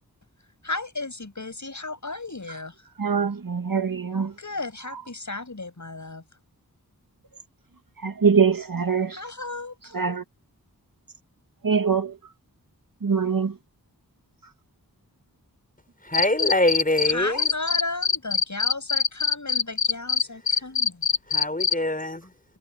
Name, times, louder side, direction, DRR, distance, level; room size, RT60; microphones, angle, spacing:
voice 1, 0.6-2.7 4.4-6.2 9.1-10.0 17.1-21.0, left 2 dB, 50° left, 7.4 m, -34 dB
voice 2, 3.0-4.3 8.0-9.2 9.9-10.2 11.6-12.1 13.0-13.5, right 6 dB, 65° right, 1.9 m, -23 dB
voice 3, 16.0-17.5 20.3-20.7 21.2-22.4, left 1 dB, 25° left, 5.4 m, -25 dB
Cricket, 16.1-17.1 17.4-21.7, left 6 dB, 75° left, 1.7 m, -22 dB
wide cardioid pair, 45°, 37 cm